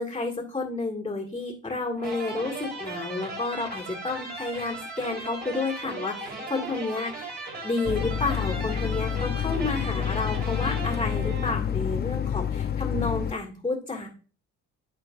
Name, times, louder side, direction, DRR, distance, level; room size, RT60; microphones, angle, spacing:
voice 1, 0.0-7.3 7.6-14.1, left 3 dB, 15° left, -1 dB, 1.9 m, -31 dB
sound 1, 2.0-12.0, right 2 dB, 35° right, 3.5 m, -37 dB
sound 2, 7.9-13.3, left 9 dB, 35° left, 0.6 m, -28 dB
13.5 x 4.5 x 2.5 m, 0.38 s
cardioid pair, 90°, 30 cm